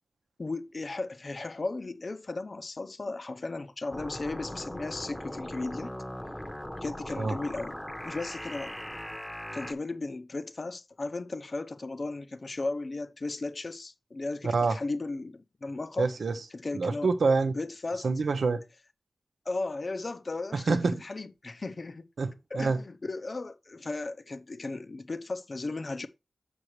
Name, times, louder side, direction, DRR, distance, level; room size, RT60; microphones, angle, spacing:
voice 1, 0.4-6.0 6.8-7.7 8.0-8.8 9.5-16.1 16.5-17.1 17.5-18.1 19.5-22.1 22.5-26.1, left 3 dB, 45° left, 0.5 m, -35 dB
sound 1, 3.9-9.7, left 1 dB, 10° left, 0.8 m, -39 dB
voice 2, 14.4-14.8 16.0-16.4 16.7-17.5 18.0-18.6 20.5-20.9 22.2-22.8, right 4 dB, 85° right, 0.8 m, -26 dB
6.7 x 6.2 x 3.1 m
wide cardioid pair, 95°, 0 cm